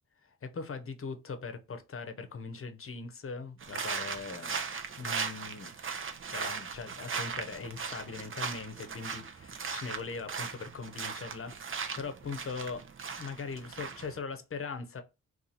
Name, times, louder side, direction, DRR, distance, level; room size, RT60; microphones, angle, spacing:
voice 1, 0.2-4.6 5.0-5.7 6.3-12.8 13.2-15.0, left 4 dB, 40° left, 0.8 m, -40 dB
sound 1, 3.6-14.2, right 5 dB, 40° right, 0.6 m, -38 dB
2.7 x 2.5 x 4.0 m
supercardioid pair, 45°, 32 cm